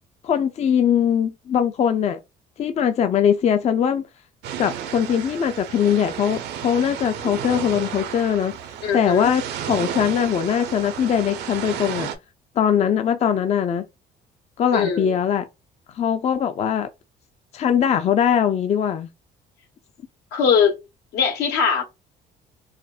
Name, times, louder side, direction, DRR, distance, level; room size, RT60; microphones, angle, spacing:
voice 1, 0.2-2.2 2.6-4.0 4.6-8.5 8.9-12.1 12.6-13.9 14.6-15.5 15.9-16.9 17.5-19.1, left 8 dB, 40° left, 0.5 m, -21 dB
sound 1, 4.4-12.2, right 9 dB, 80° right, 0.7 m, -32 dB
voice 2, 8.8-9.3 14.7-15.2 20.3-20.8 21.1-21.8, left 6 dB, 80° left, 1.2 m, -21 dB
4.9 x 2.1 x 2.4 m
cardioid pair, 110°, 17 cm